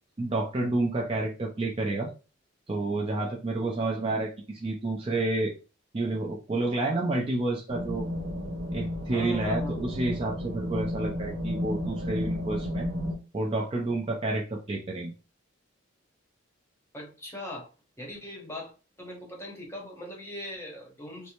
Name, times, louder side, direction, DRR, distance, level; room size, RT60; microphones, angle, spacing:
voice 1, 0.2-2.1 2.7-5.5 5.9-8.0 8.7-12.9 13.3-15.1, right 2 dB, 25° right, 0.4 m, -29 dB
sound 1, 7.7-13.1, left 1 dB, 80° right, 1.0 m, -32 dB
voice 2, 9.1-9.8 16.9-17.7 18.0-18.7 19.0-21.3, left 1 dB, 15° left, 0.8 m, -40 dB
2.6 x 2.1 x 2.9 m
head